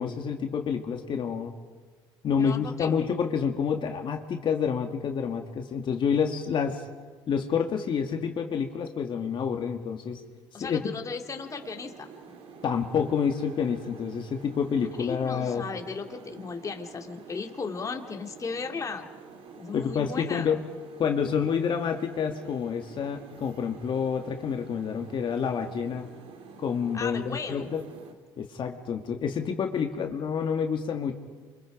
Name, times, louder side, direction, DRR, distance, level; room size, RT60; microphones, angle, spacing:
voice 1, 0.0-1.5 2.2-6.8 7.3-10.2 10.6-10.9 12.6-15.6 19.7-20.6 21.0-26.1 26.6-27.8 28.4-31.1, left 6 dB, 50° left, 3 dB, 2.1 m, -28 dB
voice 2, 2.4-3.0 10.5-12.1 15.0-19.1 19.6-20.5 26.9-27.7, left 5 dB, 30° left, 3 dB, 2.2 m, -36 dB
sound 1, 11.3-28.1, right 5 dB, 65° right, 2.8 m, -48 dB
28.0 x 25.0 x 5.1 m, 1.5 s
supercardioid pair, 75°, 11 cm